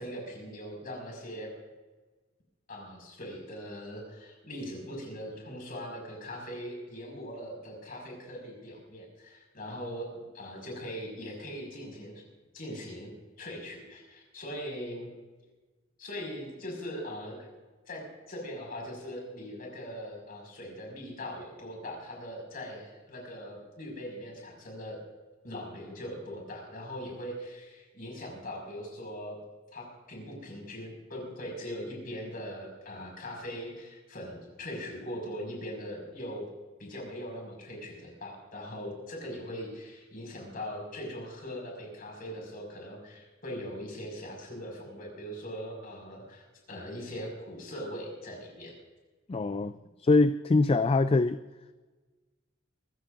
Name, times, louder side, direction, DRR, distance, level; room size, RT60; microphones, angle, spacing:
voice 1, 0.0-1.5 2.7-12.2 12.5-13.1 13.4-15.1 16.0-17.5 17.9-25.0 25.4-29.4 29.7-36.4 36.8-48.7, equal, 45° left, 1 dB, 5.6 m, -41 dB
voice 2, 49.3-49.7 50.0-51.4, left 3 dB, 30° left, 12 dB, 0.4 m, -23 dB
25.5 x 15.0 x 2.6 m, 1.3 s
head